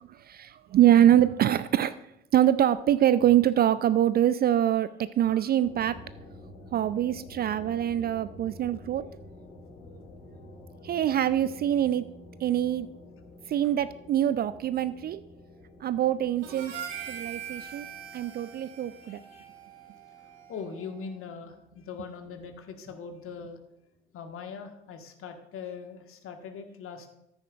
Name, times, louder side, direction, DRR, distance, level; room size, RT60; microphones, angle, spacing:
voice 1, 0.2-1.9 2.3-6.0 6.7-9.0 10.8-12.1 12.4-12.9 13.5-15.2 15.8-16.7 17.1-17.9 18.1-19.2, right 11 dB, 35° right, 15 dB, 0.4 m, -24 dB
sound 1, 5.6-23.0, left 1 dB, 65° left, 2.8 m, -50 dB
Harmonica, 16.4-20.9, right 9 dB, 70° right, 1.6 m, -42 dB
voice 2, 19.0-19.4 20.5-23.6 24.1-27.1, left 6 dB, 45° left, 5 dB, 1.5 m, -41 dB
14.0 x 8.7 x 2.4 m, 0.83 s
figure-of-eight pair, 55°, 30 cm